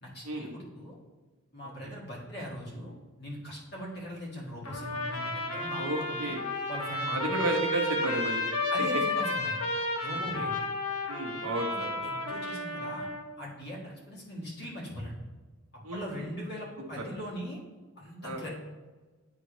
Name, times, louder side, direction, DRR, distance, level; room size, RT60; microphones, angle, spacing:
voice 1, 0.0-1.0 1.5-2.9 3.2-6.3 6.7-7.4 8.7-9.6 10.0-10.5 11.3-13.1 13.4-15.1 15.9-17.6 18.0-18.5, equal, 50° left, -5 dB, 1.7 m, -40 dB
Trumpet, 4.6-13.2, left 2 dB, 85° left, 0.9 m, -32 dB
voice 2, 5.8-6.5 7.1-8.4 10.3-10.5 11.1-12.0 15.8-16.3 16.9-17.0 18.2-18.4, right 1 dB, 90° right, 1 dB, 1.0 m, -33 dB
9.6 x 3.7 x 3.1 m, 1.3 s
head